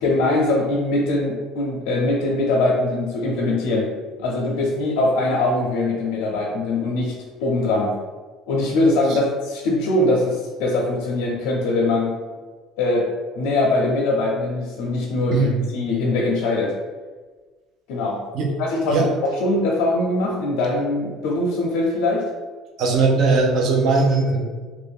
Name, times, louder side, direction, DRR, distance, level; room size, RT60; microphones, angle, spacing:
voice 1, 0.0-3.9 4.2-7.1 7.4-7.9 8.5-12.1 12.8-13.1 13.4-16.7 17.9-18.2 18.6-19.1 19.4-22.2, left 2 dB, 90° left, -3 dB, 0.6 m, -22 dB
voice 2, 22.8-24.4, right 3 dB, 45° right, 0 dB, 0.6 m, -19 dB
3.0 x 2.6 x 3.5 m, 1.4 s
cardioid pair, 170°, 0 cm